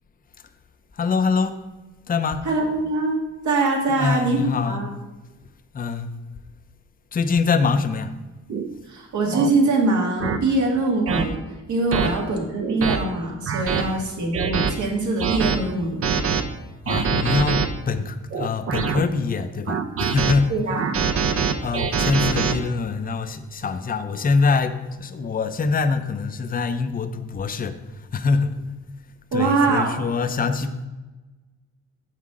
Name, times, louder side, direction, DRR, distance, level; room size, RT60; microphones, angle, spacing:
voice 1, 0.9-1.6 2.1-2.5 3.9-4.8 5.7-6.1 7.1-8.1 16.8-20.5 21.6-28.6 29.3-30.9, left 4 dB, 30° left, 9 dB, 0.6 m, -24 dB
voice 2, 2.5-4.9 8.9-11.4 11.7-16.0 20.5-21.0 29.3-30.0, right 2 dB, 70° right, 0 dB, 1.8 m, -23 dB
sound 1, 8.5-8.7 9.3-9.5 10.2-10.4 11.1-11.2 11.9-12.1 12.6-13.0 13.5-13.8 14.3-14.7 15.2-15.6 16.0-16.4 16.9-17.7 18.3-19.0 19.7-20.3 20.7-22.5, right 6 dB, 50° right, 0.7 m, -23 dB
7.3 x 5.8 x 4.8 m, 1.2 s
cardioid pair, 90°, 30 cm